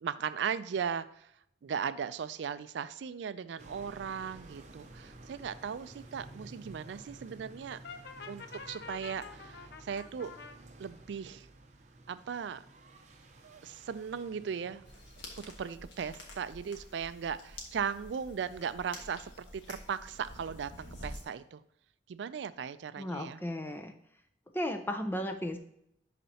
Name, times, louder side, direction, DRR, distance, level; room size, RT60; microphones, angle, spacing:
voice 1, 0.0-1.3 1.6-7.8 8.3-10.3 10.8-11.5 12.1-12.7 13.4-14.8 15.4-21.6 22.1-23.4, right 7 dB, 75° right, 14 dB, 0.3 m, -37 dB
sound 1, 3.6-15.2, right 2 dB, 40° right, 0.7 m, -53 dB
Brass instrument, 7.8-10.6, left 4 dB, 60° left, 0.5 m, -47 dB
sound 2, 14.8-21.2, left 1 dB, 80° left, 1.5 m, -48 dB
voice 2, 23.0-23.9 24.5-25.6, left 1 dB, 10° left, 6 dB, 0.5 m, -35 dB
11.0 x 4.2 x 2.8 m, 0.75 s
head